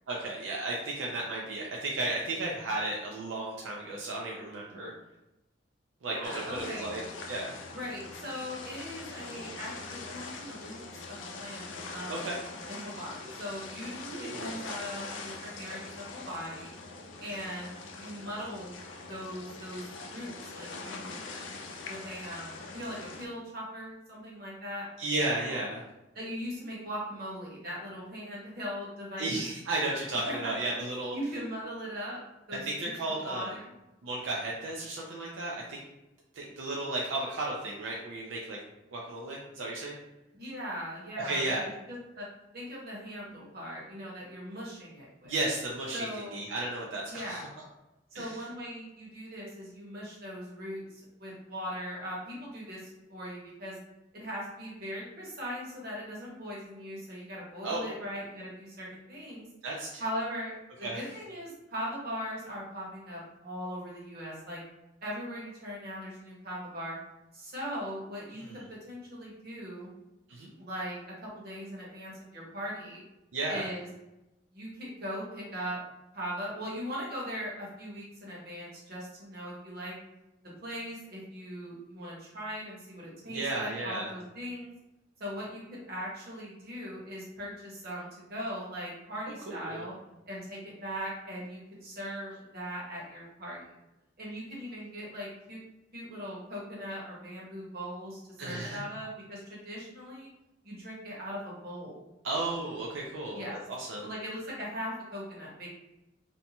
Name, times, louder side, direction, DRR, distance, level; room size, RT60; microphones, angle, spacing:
voice 1, 0.1-4.9 6.0-7.0 7.3-7.6 12.1-12.4 14.1-14.6 25.0-25.8 29.2-31.2 32.5-33.5 34.0-35.8 36.3-38.6 38.9-39.9 41.2-41.6 45.2-47.5 48.1-48.4 57.6-57.9 59.6-60.0 60.8-61.1 68.3-68.7 70.3-70.5 73.3-73.7 83.2-84.1 89.2-89.9 98.4-98.8 102.2-104.1, right 2 dB, 85° right, -2 dB, 0.4 m, -34 dB
voice 2, 6.0-6.9 7.7-12.2 12.7-16.7 17.2-18.8 19.0-21.1 21.9-24.9 25.5-25.6 26.1-29.4 30.2-30.6 31.1-32.2 32.5-32.9 33.3-33.7 40.4-42.3 42.5-45.3 45.9-46.4 47.1-47.4 48.1-53.8 54.1-59.5 60.0-60.5 60.8-64.6 65.0-67.0 67.3-69.9 70.6-73.0 73.5-73.9 74.5-75.8 76.1-79.9 80.6-84.7 85.2-89.9 90.3-93.6 94.2-95.6 95.9-100.3 100.6-102.0 103.3-103.6 104.0-105.7, equal, 55° right, -5 dB, 1.0 m, -40 dB
sound 1, 6.2-23.3, left 3 dB, 90° left, 0.4 m, -43 dB
2.6 x 2.2 x 2.7 m, 0.96 s
head